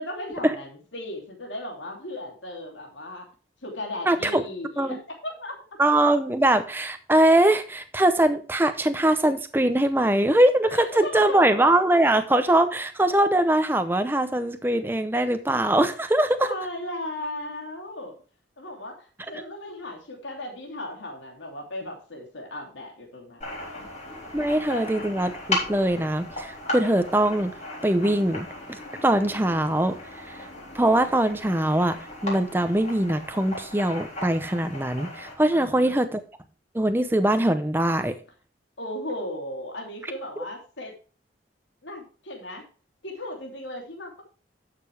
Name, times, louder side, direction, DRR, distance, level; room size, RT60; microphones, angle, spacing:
voice 1, 0.0-3.3 3.6-5.6 10.7-11.5 16.4-18.2 18.6-23.9 24.4-24.9 35.5-35.9 38.8-40.9 41.8-42.6 43.0-44.2, left 1 dB, 80° left, 1 dB, 2.9 m, -36 dB
voice 2, 4.1-4.4 4.8-5.0 5.8-16.5 24.3-27.5 27.8-30.5 30.7-36.2 36.7-38.1, right 1 dB, 10° right, 9 dB, 0.7 m, -22 dB
sound 1, 23.4-35.3, left 1 dB, 40° left, 3.7 m, -36 dB
11.5 x 6.7 x 3.4 m, 0.37 s
head